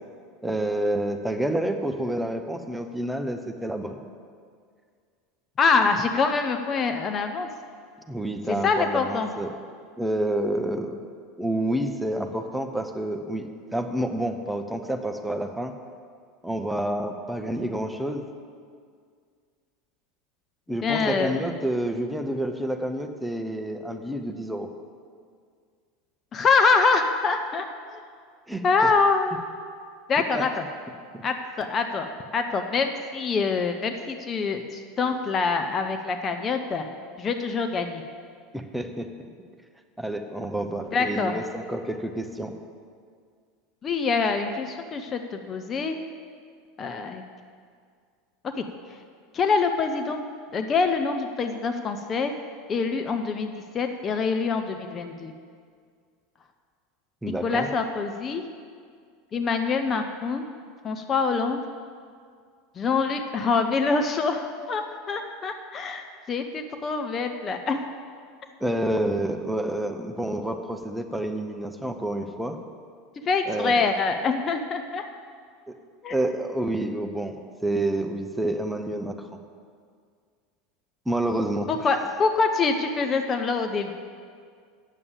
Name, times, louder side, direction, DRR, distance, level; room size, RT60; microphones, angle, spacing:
voice 1, 0.4-4.0 8.1-9.5 10.0-11.0 11.4-15.7 16.4-18.2 20.7-24.7 28.5-28.7 30.3-30.4 31.1-31.2 38.5-39.1 40.0-42.5 57.2-57.7 68.6-72.6 73.5-73.9 76.1-79.3 81.1-81.7, right 1 dB, 5° right, 5 dB, 0.8 m, -28 dB
voice 2, 5.6-7.5 8.6-9.3 20.8-21.4 26.3-28.0 28.6-29.4 30.1-30.6 31.2-32.1 32.3-36.9 37.2-38.0 40.9-41.4 43.8-46.0 46.8-47.2 48.6-48.7 49.3-50.2 50.5-52.3 52.7-55.3 57.2-58.4 59.3-60.4 60.8-61.6 62.8-67.8 73.2-75.0 76.0-76.2 81.7-83.9, left 4 dB, 30° left, 6 dB, 0.7 m, -25 dB
8.2 x 7.0 x 8.3 m, 2.1 s
figure-of-eight pair, 75°, 0 cm